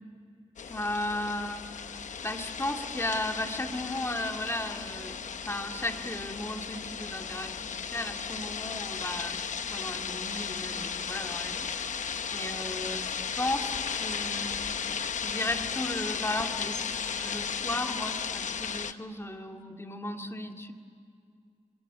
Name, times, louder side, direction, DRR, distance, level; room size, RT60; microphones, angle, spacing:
sound 1, 0.6-18.9, left 6 dB, 85° left, 0.9 m, -35 dB
voice 1, 0.7-9.4 9.7-12.0 12.3-14.6 15.2-20.7, left 1 dB, 20° left, 3 dB, 2.2 m, -35 dB
26.0 x 22.0 x 9.9 m, 2.4 s
wide cardioid pair, 95°, 12 cm